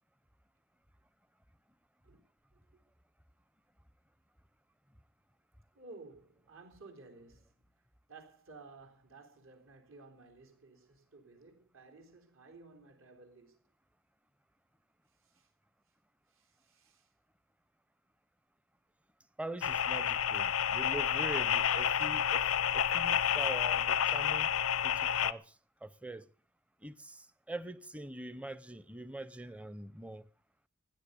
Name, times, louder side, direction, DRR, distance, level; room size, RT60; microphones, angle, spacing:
voice 1, 2.5-2.8 5.7-7.5 8.1-13.6 15.2-15.5 16.3-17.1, right 3 dB, 75° right, 4.0 m, -55 dB
voice 2, 19.4-22.5 22.7-24.5 24.8-25.5 25.8-26.3 26.8-30.3, right 2 dB, 5° right, 0.6 m, -43 dB
sound 1, 19.6-25.3, left 9 dB, 90° left, 0.7 m, -30 dB
16.5 x 10.5 x 6.7 m
head